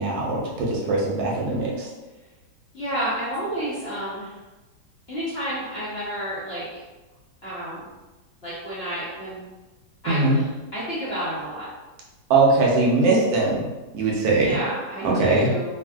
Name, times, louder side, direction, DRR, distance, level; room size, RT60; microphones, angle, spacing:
voice 1, 0.0-1.9 10.1-10.4 12.3-13.6 13.9-14.6 15.0-15.5, right 3 dB, 85° right, -3 dB, 1.4 m, -21 dB
voice 2, 2.7-4.4 5.1-6.8 7.4-7.9 8.4-9.4 10.0-11.7 14.3-15.7, right 1 dB, 50° left, -10 dB, 0.8 m, -30 dB
3.3 x 2.5 x 2.3 m, 1.1 s
omnidirectional pair, 1.9 m